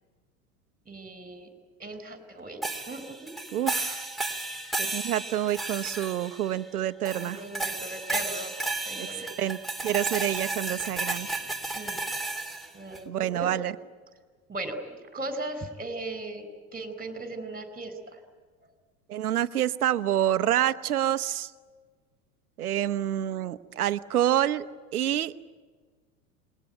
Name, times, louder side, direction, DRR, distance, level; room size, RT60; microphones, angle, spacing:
voice 1, 0.9-1.5 1.8-3.3 7.2-8.6 8.8-9.3 11.8-12.0 12.7-13.5 14.5-16.4 16.7-18.2, right 2 dB, 20° right, 11 dB, 4.6 m, -37 dB
sound 1, 2.6-6.7 7.1-13.0, right 2 dB, ahead, 3.1 m, -33 dB
voice 2, 3.5-4.1 4.8-7.4 9.0-9.6 9.8-11.4 13.1-13.7 19.1-21.5 22.6-24.6 24.9-25.3, right 11 dB, 85° right, 11 dB, 1.1 m, -27 dB
28.5 x 21.0 x 9.2 m, 1.5 s
hypercardioid pair, 85°, 43 cm